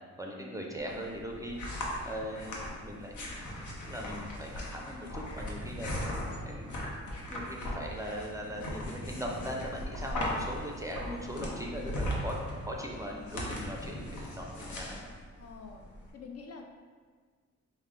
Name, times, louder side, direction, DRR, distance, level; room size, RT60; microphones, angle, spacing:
voice 1, 0.2-1.6 2.0-3.4 3.8-6.0 6.4-6.7 7.3-12.4 12.6-15.0, equal, 10° right, -1 dB, 0.4 m, -40 dB
sound 1, 0.8-16.1, left 1 dB, 80° left, 0.8 m, -39 dB
sound 2, 1.1-14.9, equal, 15° left, 1.0 m, -47 dB
voice 2, 15.4-15.8 16.1-16.7, left 5 dB, 55° left, 3 dB, 0.4 m, -46 dB
4.4 x 2.1 x 3.6 m, 1.6 s
cardioid pair, 110°, 29 cm